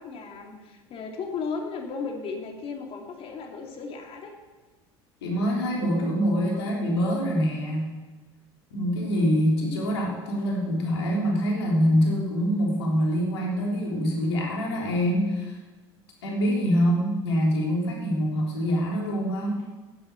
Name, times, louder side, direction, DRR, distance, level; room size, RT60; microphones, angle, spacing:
voice 1, 0.0-4.3 6.5-6.8, left 5 dB, 45° left, 2 dB, 2.8 m, -35 dB
voice 2, 5.2-7.9 8.7-15.6 16.2-19.6, equal, 90° left, -2 dB, 3.5 m, -25 dB
11.5 x 8.0 x 8.2 m, 1.3 s
hypercardioid pair, 85°, 13 cm